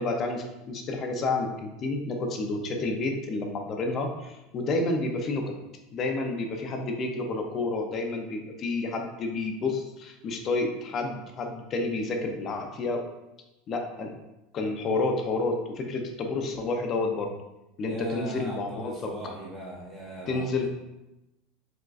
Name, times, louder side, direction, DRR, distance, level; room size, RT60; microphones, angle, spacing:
voice 1, 0.0-5.5 5.9-13.0 13.7-14.1 14.5-17.3 17.8-19.1 20.3-20.7, left 3 dB, 35° left, 3 dB, 0.6 m, -30 dB
voice 2, 17.9-20.7, right 1 dB, ahead, -7 dB, 0.7 m, -39 dB
4.8 x 3.6 x 2.5 m, 0.95 s
supercardioid pair, 135°, 0 cm